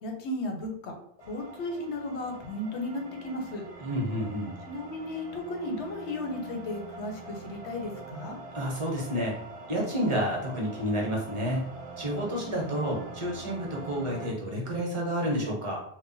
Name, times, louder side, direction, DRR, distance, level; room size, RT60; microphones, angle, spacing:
voice 1, 0.0-0.9 1.2-3.6 4.7-8.4, left 1 dB, 70° left, 2 dB, 0.9 m, -35 dB
sound 1, 1.2-14.3, right 3 dB, 60° right, 0.3 m, -44 dB
voice 2, 3.8-4.5 8.5-9.3 9.7-11.7 12.0-15.8, equal, 30° right, -2 dB, 0.7 m, -30 dB
2.2 x 2.2 x 3.8 m, 0.69 s
omnidirectional pair, 1.2 m